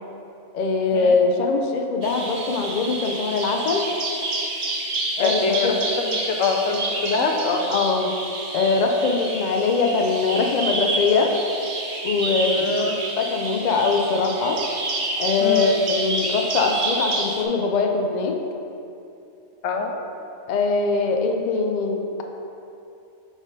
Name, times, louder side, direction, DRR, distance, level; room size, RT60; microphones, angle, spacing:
voice 1, 0.5-3.8 5.2-5.7 7.7-8.1 8.5-11.3 12.0-14.6 15.2-18.3 20.5-22.2, left 4 dB, 60° left, 3 dB, 0.4 m, -22 dB
Bird vocalization bird call bird song, 2.0-17.4, right 2 dB, 50° right, 0.8 m, -29 dB
voice 2, 5.2-7.7 12.5-12.9 15.4-15.7 19.6-20.0, left 4 dB, 80° left, 3 dB, 1.0 m, -24 dB
4.8 x 4.1 x 5.1 m, 2.7 s
omnidirectional pair, 1.3 m